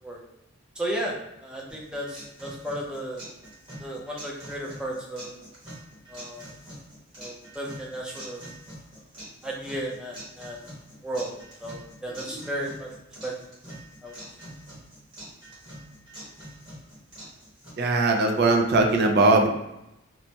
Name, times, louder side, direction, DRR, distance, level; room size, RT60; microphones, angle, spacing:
voice 1, 0.8-1.1 1.4-3.3 3.8-5.3 6.1-6.5 7.2-8.4 9.4-10.6 11.0-11.3 11.6-12.9 13.2-13.3 14.0-14.2, right 1 dB, 5° right, -3 dB, 0.5 m, -34 dB
sound 1, 1.7-17.7, right 1 dB, 30° right, 1.5 m, -45 dB
voice 2, 17.8-19.5, right 2 dB, 55° right, 3 dB, 0.4 m, -20 dB
3.1 x 2.1 x 2.8 m, 0.88 s
head